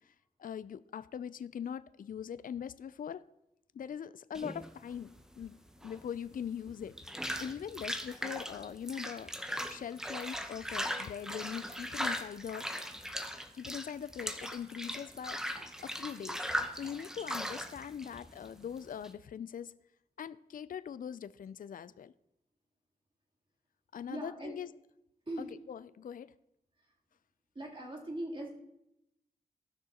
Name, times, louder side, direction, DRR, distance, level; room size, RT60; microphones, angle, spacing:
voice 1, 0.4-3.2 3.7-5.6 5.8-7.0 7.4-9.3 9.7-12.7 13.5-15.4 15.8-16.4 16.7-19.7 20.2-22.1 23.9-24.7 25.7-26.3, left 8 dB, 55° left, 0.4 m, -41 dB
sound 1, 4.3-19.1, equal, 5° right, 0.9 m, -39 dB
voice 2, 24.1-24.6 25.3-25.5 26.8-26.9 27.5-28.5, right 1 dB, 30° right, 3.2 m, -40 dB
17.0 x 6.2 x 2.9 m
cardioid pair, 50°, 17 cm